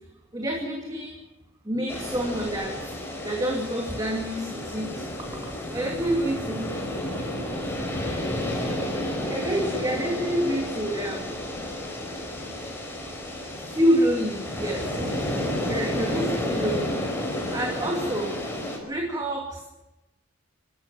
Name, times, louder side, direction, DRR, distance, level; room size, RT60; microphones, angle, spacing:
voice 1, 0.3-1.2 1.6-2.7 3.2-4.9 5.7-6.7 7.5-8.0 9.3-11.4 13.7-14.9 15.7-17.0 17.5-18.4 18.8-19.7, equal, 20° right, 0 dB, 2.6 m, -27 dB
sound 1, 1.9-18.8, left 1 dB, 10° left, 4.4 m, -31 dB
28.0 x 13.0 x 7.5 m, 1.0 s
head